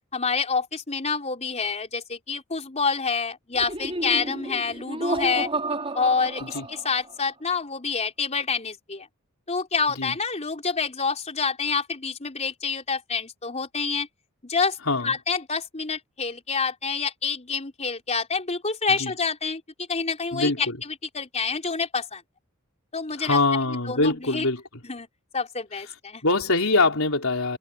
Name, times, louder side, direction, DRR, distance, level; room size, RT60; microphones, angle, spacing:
voice 1, 0.1-5.5 5.9-9.1 9.5-14.1 14.4-14.8 15.0-19.6 19.9-22.2 22.9-23.4 23.9-24.5 24.8-25.1 25.3-26.2, left 5 dB, 30° left, 4.2 m, -27 dB
Laughter, 3.5-7.3, right 2 dB, 25° right, 5.0 m, -31 dB
voice 2, 20.3-20.8 23.2-24.6 26.2-27.6, left 3 dB, 70° left, 4.5 m, -23 dB
head